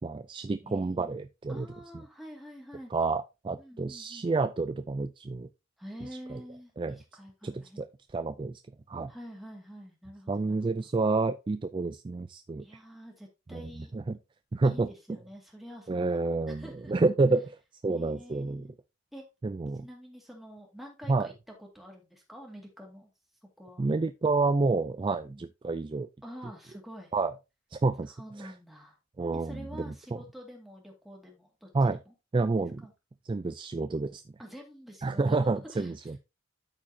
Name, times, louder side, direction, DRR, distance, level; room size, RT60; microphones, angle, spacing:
voice 1, 0.0-1.7 2.9-5.5 6.3-6.4 6.8-7.0 7.4-7.9 8.1-8.6 8.9-9.1 10.3-12.6 13.5-14.2 14.5-14.9 15.9-17.5 17.8-18.7 19.4-19.9 21.1-21.3 23.8-26.1 27.1-27.3 27.7-28.5 29.2-30.2 31.7-32.0 32.3-32.8 33.3-34.2 35.0-36.2, right 3 dB, 25° right, 0.3 m, -29 dB
voice 2, 0.6-1.2 1.5-2.9 3.6-4.3 5.8-7.9 9.1-10.6 12.6-13.9 14.6-16.2 16.5-16.9 17.9-18.7 19.1-19.3 19.8-21.3 21.6-23.1 23.6-23.9 25.2-25.5 26.2-27.1 28.2-29.0 29.3-32.1 32.8-32.9 34.4-35.9, equal, ahead, 2.2 m, -47 dB
13.0 x 4.5 x 2.8 m
head